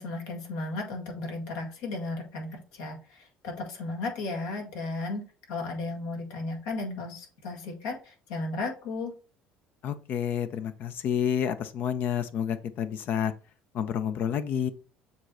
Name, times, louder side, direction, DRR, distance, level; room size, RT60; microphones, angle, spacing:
voice 1, 0.0-5.2 5.5-9.1, left 2 dB, 80° left, 2.0 m, -35 dB
voice 2, 9.8-13.3 13.7-14.7, left 8 dB, 60° left, 0.7 m, -29 dB
7.0 x 3.3 x 4.0 m
hypercardioid pair, 75°, 4 cm